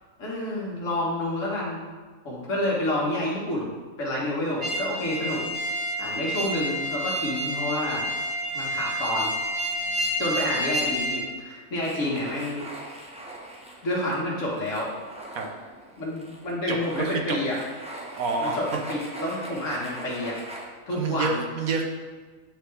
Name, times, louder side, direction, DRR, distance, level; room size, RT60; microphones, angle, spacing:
voice 1, 0.2-1.8 2.2-5.4 6.0-8.1 8.5-9.3 10.2-12.6 13.8-14.9 16.0-17.6 18.4-20.5 20.9-21.4, left 1 dB, 65° left, -5 dB, 1.8 m, -29 dB
sound 1, 4.6-11.2, equal, 45° right, 1.7 m, -29 dB
sound 2, 11.8-20.6, right 1 dB, 10° right, 0.5 m, -42 dB
voice 2, 16.7-17.4 18.1-18.6 20.9-21.8, right 4 dB, 80° right, 2 dB, 1.3 m, -28 dB
9.0 x 3.4 x 3.3 m, 1.4 s
omnidirectional pair, 1.5 m